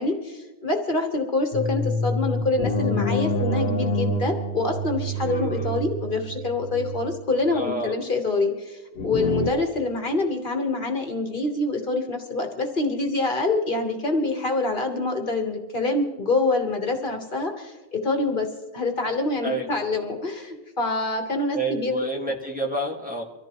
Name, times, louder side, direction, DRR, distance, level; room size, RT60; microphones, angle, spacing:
voice 1, 0.0-18.5 18.7-22.0, left 2 dB, 55° left, 4 dB, 1.4 m, -26 dB
sound 1, 1.5-7.6 9.0-9.5, equal, 75° left, 1.3 m, -27 dB
voice 2, 5.2-5.8 7.5-8.0 19.4-19.7 21.5-23.2, right 1 dB, 10° right, -1 dB, 1.8 m, -29 dB
24.0 x 14.5 x 3.0 m, 1.2 s
omnidirectional pair, 1.1 m